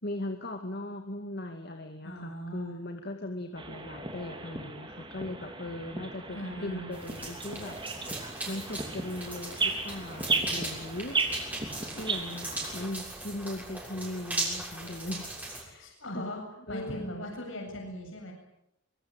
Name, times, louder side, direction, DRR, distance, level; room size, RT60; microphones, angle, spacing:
voice 1, 0.0-7.8 8.1-11.2 12.0-16.3 16.7-17.2, left 1 dB, 55° left, 5 dB, 2.4 m, -39 dB
voice 2, 2.0-2.7 6.3-6.9 15.8-16.4 16.7-18.3, equal, 75° left, 1 dB, 7.7 m, -39 dB
sound 1, 3.6-12.9, right 3 dB, 25° right, 3.6 m, -35 dB
sound 2, 6.9-15.6, right 2 dB, 10° right, 6.8 m, -38 dB
25.0 x 23.5 x 9.1 m, 0.81 s
head